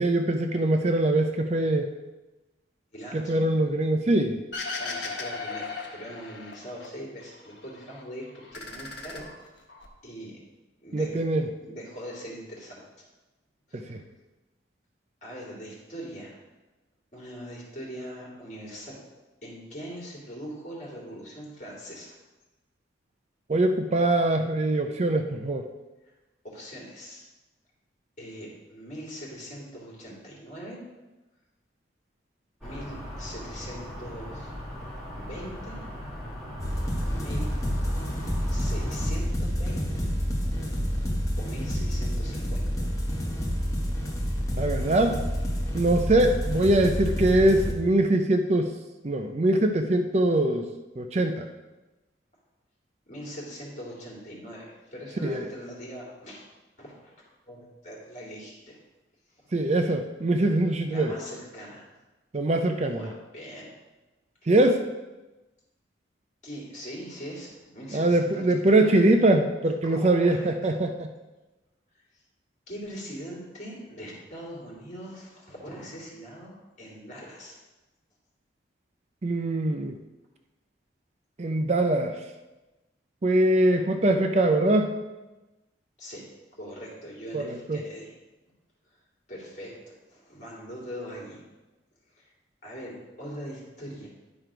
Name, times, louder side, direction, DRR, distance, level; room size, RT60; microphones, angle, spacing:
voice 1, 0.0-1.9 3.1-4.4 10.9-11.5 13.7-14.0 23.5-25.7 44.6-45.2 45.7-48.7 49.0-50.7 51.0-51.5 55.2-55.4 59.5-61.1 62.3-63.1 64.5-64.8 67.9-71.1 79.2-79.9 81.4-82.2 83.2-84.9 87.3-87.8, right 1 dB, 35° right, 6 dB, 0.5 m, -23 dB
voice 2, 2.9-3.4 4.8-8.2 8.5-9.3 10.0-10.4 10.8-11.2 11.6-12.8 13.7-14.0 15.2-16.3 17.1-19.0 19.4-22.1 26.4-27.2 28.2-30.8 32.6-34.5 35.1-35.8 37.1-37.5 38.5-40.1 41.4-42.8 53.1-56.4 56.8-57.1 57.5-58.8 59.4-59.5 60.9-61.8 62.9-63.1 63.3-63.7 64.4-64.5 66.4-69.0 69.8-70.7 71.9-72.0 72.7-77.6 86.0-86.2 86.5-88.1 88.9-89.0 89.3-91.4 92.2-92.3 92.6-94.1, equal, 40° left, -4 dB, 2.8 m, -41 dB
sound 1, 4.5-6.9 7.2-8.0 8.4-9.9, left 4 dB, 70° left, 1.3 m, -37 dB
sound 2, 32.6-39.1, equal, ahead, 2.2 m, -39 dB
sound 3, 36.6-47.7, equal, 20° left, 1.1 m, -28 dB
10.5 x 4.5 x 5.0 m, 1.1 s
head